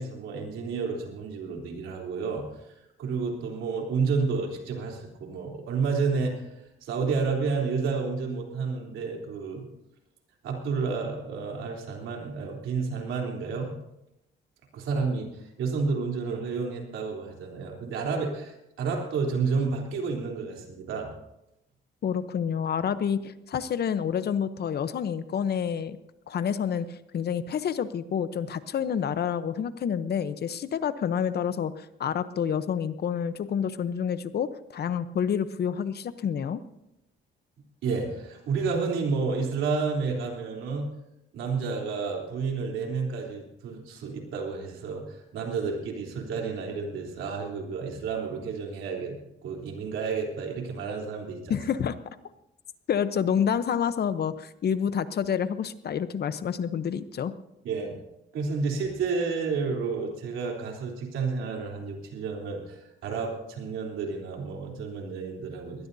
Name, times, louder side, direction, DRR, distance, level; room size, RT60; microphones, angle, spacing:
voice 1, 0.0-2.7 3.0-6.5 6.8-9.7 10.4-13.8 14.7-21.1 37.8-40.9 41.3-51.6 57.6-58.0 58.3-65.9, right 4 dB, 85° right, 1 dB, 3.5 m, -30 dB
voice 2, 22.0-26.0 26.3-36.6 51.5-52.0 52.9-57.3, left 8 dB, 55° left, 13 dB, 0.9 m, -28 dB
21.5 x 19.0 x 2.8 m, 0.88 s
cardioid pair, 90°, 20 cm